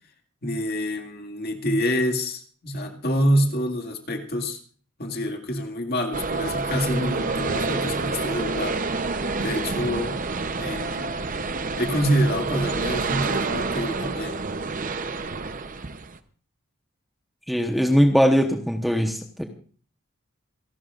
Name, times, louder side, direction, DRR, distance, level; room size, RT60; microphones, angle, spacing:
voice 1, 0.4-4.6 5.0-8.8 9.4-10.2 10.6-11.2 11.8-14.4, equal, 45° left, 4 dB, 2.1 m, -26 dB
sound 1, 6.1-16.2, right 3 dB, 40° right, 0.8 m, -28 dB
voice 2, 17.5-19.4, equal, ahead, 3 dB, 1.0 m, -20 dB
27.5 x 12.0 x 2.5 m, 0.43 s
head